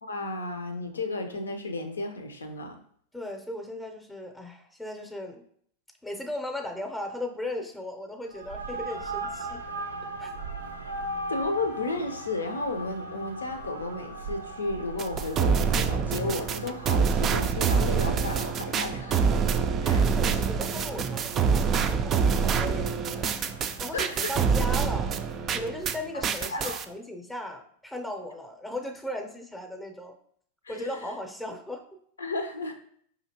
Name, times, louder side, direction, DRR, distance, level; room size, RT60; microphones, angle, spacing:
voice 1, 0.0-2.8 11.3-19.2 19.8-20.1 23.9-24.3 26.1-26.8 30.6-31.0 32.2-32.7, left 2 dB, 80° left, 5 dB, 0.5 m, -33 dB
voice 2, 3.1-5.4 6.0-9.6 10.2-10.3 19.9-23.3 23.8-25.1 25.5-30.2 30.7-31.8, left 1 dB, 10° left, 3 dB, 0.6 m, -37 dB
sound 1, 8.3-26.2, right 2 dB, 85° right, 0.5 m, -40 dB
sound 2, 15.0-26.0 26.2-26.8, right 6 dB, 30° right, 0.3 m, -26 dB
5.0 x 2.7 x 2.9 m, 0.63 s
figure-of-eight pair, 90°, 0 cm